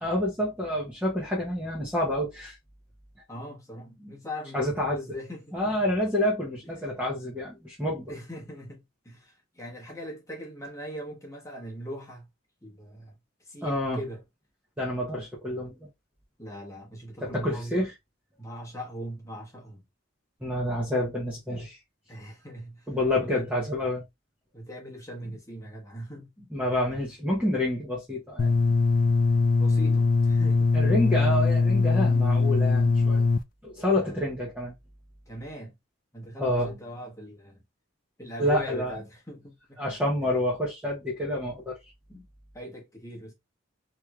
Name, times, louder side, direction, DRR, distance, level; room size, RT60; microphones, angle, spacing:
voice 1, 0.0-2.6 4.5-5.0 5.5-8.1 13.6-14.0 14.8-15.7 17.2-17.9 20.4-21.8 22.9-24.0 26.5-28.5 30.7-33.2 33.6-34.7 36.4-36.7 38.4-38.9 39.8-41.8, left 1 dB, 5° right, 0.8 m, -28 dB
voice 2, 3.3-5.8 6.8-6.9 8.1-12.3 12.6-13.2 13.5-14.2 16.4-17.8 18.4-19.8 22.1-22.9 23.2-23.5 24.5-26.5 26.9-27.0 29.5-30.8 33.9-34.3 35.3-35.7 36.1-37.6 38.2-39.8 42.1-42.3 42.5-43.3, equal, 15° left, 1.1 m, -40 dB
sound 1, 28.4-33.4, left 4 dB, 45° left, 0.3 m, -22 dB
3.6 x 2.9 x 2.3 m
head